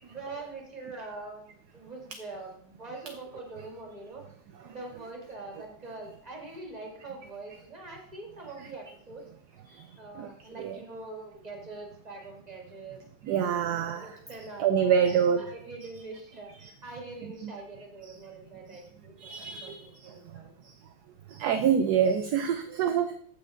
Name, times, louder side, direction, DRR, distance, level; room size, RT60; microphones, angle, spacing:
voice 1, 0.0-4.2 4.6-9.2 9.7-13.0 13.7-20.5, right 3 dB, 20° right, 0 dB, 2.3 m, -44 dB
voice 2, 13.3-14.1 14.6-15.4 17.4-17.5 19.2-19.9 21.3-23.2, right 8 dB, 70° right, 9 dB, 1.0 m, -26 dB
15.0 x 6.2 x 3.7 m, 0.63 s
omnidirectional pair, 2.1 m